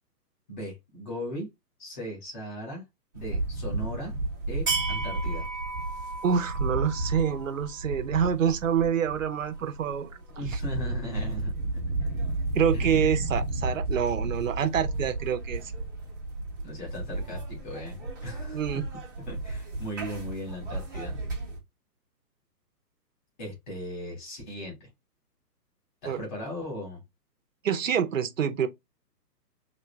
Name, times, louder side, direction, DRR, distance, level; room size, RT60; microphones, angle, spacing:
voice 1, 0.5-1.5 1.8-2.8 3.1-4.1 4.5-5.5 10.3-11.5 12.7-13.0 16.6-18.8 19.3-21.2 23.4-24.9 26.0-27.0, equal, 30° left, 3.2 m, -38 dB
sound 1, 3.1-21.6, right 2 dB, 15° right, 0.7 m, -32 dB
voice 2, 6.2-10.1 10.5-10.6 12.5-15.6 18.5-18.8 26.0-26.2 27.6-28.7, right 8 dB, 55° right, 0.7 m, -27 dB
5.0 x 3.7 x 2.3 m
hypercardioid pair, 175°, 49 cm